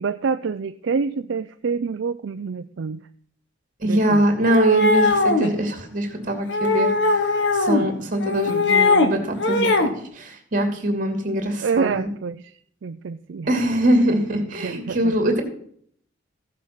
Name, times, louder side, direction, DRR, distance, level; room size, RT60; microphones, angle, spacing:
voice 1, 0.0-3.0 3.8-4.2 8.5-8.7 11.6-12.5 12.8-13.5 14.6-15.1, right 5 dB, 70° right, 10 dB, 0.4 m, -27 dB
voice 2, 3.8-6.9 7.5-9.9 10.1-12.1 13.5-15.4, right 1 dB, 45° right, 4 dB, 2.7 m, -22 dB
sound 1, 4.4-5.5 6.5-7.9 8.2-9.1 9.4-9.9, left 3 dB, 65° left, 1.4 m, -20 dB
15.0 x 7.5 x 5.6 m, 0.63 s
head